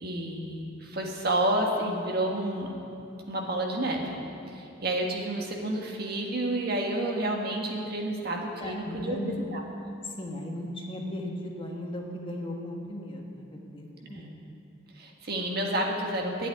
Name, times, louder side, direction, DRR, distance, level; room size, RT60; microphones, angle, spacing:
voice 1, 0.0-2.7 3.3-4.2 4.5-9.6 14.1-14.3 14.9-16.5, right 1 dB, 50° right, 0 dB, 1.6 m, -30 dB
voice 2, 8.6-9.5 10.0-14.3, left 1 dB, 25° left, 0 dB, 1.3 m, -37 dB
10.5 x 8.6 x 9.6 m, 2.7 s
head